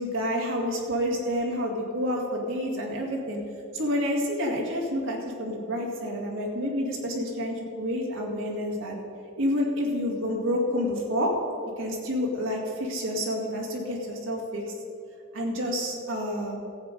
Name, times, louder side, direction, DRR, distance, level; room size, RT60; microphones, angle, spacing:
voice 1, 0.0-3.4 3.7-9.0 9.4-11.3 11.8-14.6 15.3-16.6, equal, 80° right, -2 dB, 2.2 m, -29 dB
14.5 x 8.3 x 5.3 m, 2.5 s
head